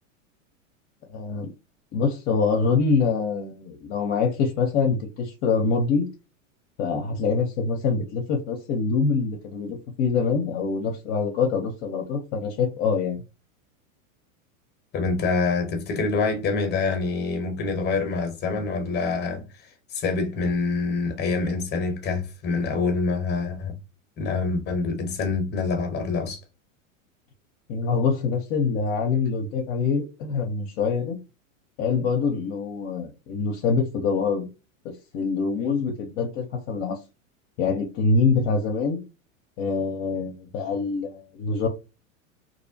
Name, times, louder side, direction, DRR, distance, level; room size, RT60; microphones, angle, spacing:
voice 1, 1.1-1.5 1.9-6.1 6.8-13.2 27.7-31.2 31.8-34.5 35.1-37.0 37.6-39.0 39.6-41.7, left 5 dB, 50° left, 0.7 m, -25 dB
voice 2, 14.9-19.4 19.9-23.7 24.2-26.4, left 4 dB, 25° left, 0.9 m, -26 dB
2.7 x 2.1 x 2.6 m
hypercardioid pair, 115°, 40 cm